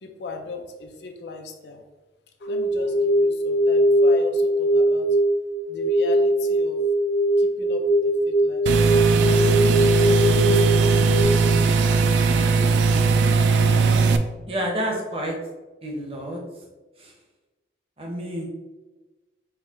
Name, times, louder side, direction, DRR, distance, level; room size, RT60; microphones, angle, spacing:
voice 1, 0.0-1.8 2.4-5.2 5.7-6.8 7.4-7.9 8.3-8.9, left 3 dB, 75° left, 3 dB, 0.5 m, -37 dB
sound 1, 2.4-11.2, right 1 dB, 45° left, 0.8 m, -21 dB
sound 2, 8.7-14.2, right 4 dB, 85° right, 0.3 m, -19 dB
voice 2, 14.5-15.3 15.8-16.4 17.0-17.1 18.0-18.5, equal, 30° right, -1 dB, 0.8 m, -29 dB
4.6 x 2.1 x 3.5 m, 1.2 s
head